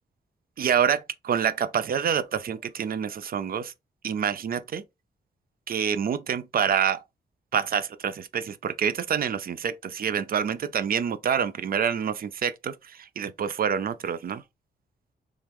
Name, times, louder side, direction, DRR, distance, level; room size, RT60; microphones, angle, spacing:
voice 1, 0.6-3.7 4.0-4.8 5.7-7.0 7.5-14.4, right 8 dB, 55° right, 0.4 m, -27 dB
3.3 x 3.0 x 3.5 m
wide cardioid pair, 160°, 18 cm